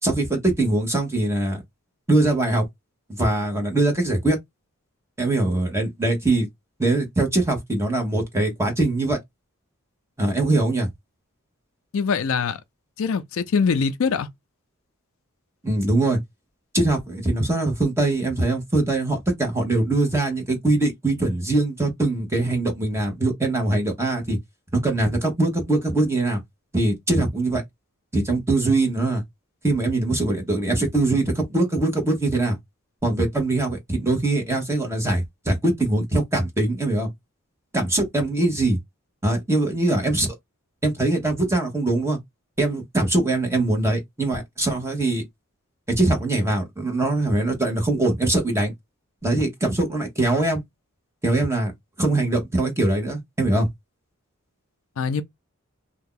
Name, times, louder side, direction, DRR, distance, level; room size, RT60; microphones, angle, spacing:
voice 1, 0.0-1.6 2.1-2.6 3.2-4.4 5.2-6.5 6.8-9.2 10.2-10.9 15.6-16.2 16.7-24.4 24.8-26.4 26.7-27.6 28.1-29.2 29.6-32.6 33.0-37.1 37.7-38.8 39.2-40.3 40.8-42.2 42.6-45.2 45.9-48.7 49.2-50.6 51.2-51.7 52.0-53.7, right 2 dB, 10° right, 1.1 m, -22 dB
voice 2, 11.9-12.6 13.0-14.3 55.0-55.2, left 5 dB, 65° left, 0.4 m, -23 dB
2.7 x 2.3 x 3.7 m
head